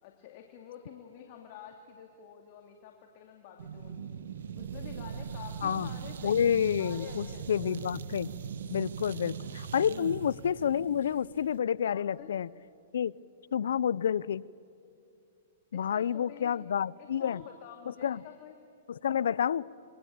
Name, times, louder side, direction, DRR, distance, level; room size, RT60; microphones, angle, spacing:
voice 1, 0.0-4.2 4.5-6.5 6.8-8.2 9.1-9.6 9.9-10.1 11.9-12.3 15.7-16.5 17.0-18.6, left 9 dB, 50° left, 2.5 m, -49 dB
sound 1, 3.6-11.6, right 7 dB, 85° right, 1.2 m, -40 dB
voice 2, 6.2-8.3 8.7-12.5 12.9-13.1 13.5-14.4 15.7-17.4 18.0-18.2 18.9-19.7, left 8 dB, 80° left, 0.5 m, -29 dB
27.0 x 23.0 x 8.6 m
hypercardioid pair, 140°, 0 cm